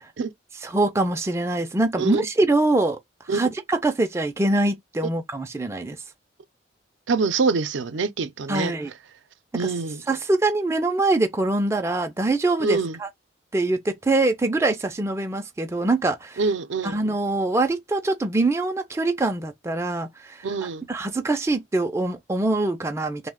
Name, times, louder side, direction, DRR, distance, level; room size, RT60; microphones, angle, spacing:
voice 1, 0.6-3.0 3.3-6.0 8.5-8.9 9.6-9.7 10.1-13.1 13.5-16.4 16.8-20.4 20.9-23.3, right 2 dB, 15° right, 0.3 m, -24 dB
voice 2, 7.1-8.7 9.5-10.0 12.6-13.0 16.4-17.0 20.4-20.9, right 4 dB, 70° right, 0.5 m, -25 dB
3.1 x 2.1 x 3.5 m
head